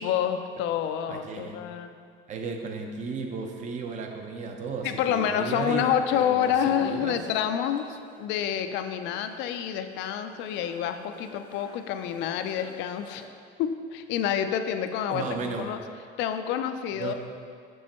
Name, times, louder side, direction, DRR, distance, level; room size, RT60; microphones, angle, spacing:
voice 1, 0.0-2.0 4.8-13.2 13.6-15.8 16.2-17.1, left 9 dB, 70° left, 8 dB, 0.4 m, -28 dB
voice 2, 1.1-1.6 2.3-5.9 6.1-6.5 6.8-7.2 15.1-15.7 16.9-17.1, right 5 dB, 40° right, 3 dB, 0.6 m, -34 dB
sound 1, 5.5-5.6 5.9-13.3, left 2 dB, 25° left, 0.6 m, -50 dB
6.2 x 6.2 x 3.0 m, 2.2 s
cardioid pair, 150°, 19 cm